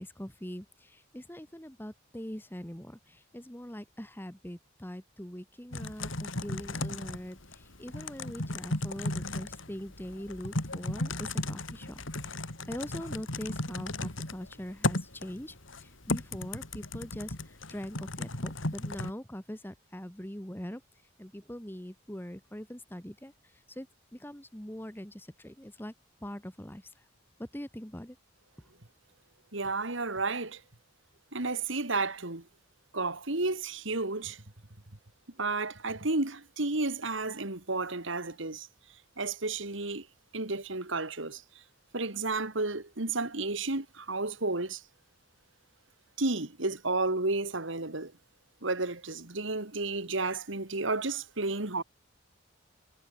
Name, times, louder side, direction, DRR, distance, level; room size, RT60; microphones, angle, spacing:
voice 1, 0.0-12.0 12.7-20.8 21.2-23.9 24.1-25.9 26.2-26.9 27.4-28.2, equal, 10° left, 1.6 m, -42 dB
Typing, 5.7-19.1, left 2 dB, 70° left, 3.9 m, -35 dB
voice 2, 29.5-30.6 31.3-32.4 32.9-34.4 35.4-38.7 39.2-40.1 40.3-41.4 41.9-44.8 46.2-48.1 48.6-51.8, right 3 dB, 70° right, 2.3 m, -32 dB
head